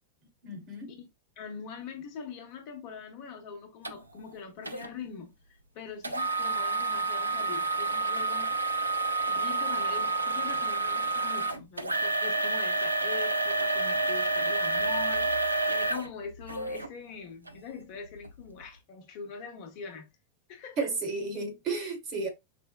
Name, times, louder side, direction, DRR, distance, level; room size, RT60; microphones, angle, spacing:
voice 1, 0.4-0.9 20.8-22.3, right 3 dB, 40° right, 1.1 m, -33 dB
voice 2, 1.4-5.3 5.7-8.6 9.3-15.3 15.7-20.1 20.5-20.9, left 6 dB, 45° left, 0.8 m, -43 dB
sound 1, 3.8-3.9 4.7-4.9 6.0-16.9 17.5-17.6 18.2-18.3, right 3 dB, 80° right, 0.4 m, -29 dB
4.2 x 2.1 x 2.2 m
figure-of-eight pair, 90°, 0 cm